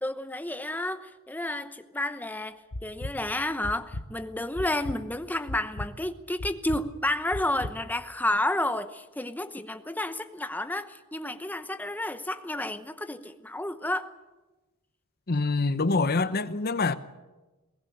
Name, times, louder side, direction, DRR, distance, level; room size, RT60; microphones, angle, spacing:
voice 1, 0.0-14.1, left 1 dB, 10° left, 0.9 m, -31 dB
sound 1, 2.7-3.1 3.6-4.0 4.5-5.0 5.5-5.9 6.4-6.8 7.3-7.7, left 1 dB, 65° left, 1.1 m, -35 dB
voice 2, 15.3-16.9, left 3 dB, 45° left, 0.9 m, -25 dB
22.5 x 17.0 x 8.6 m
head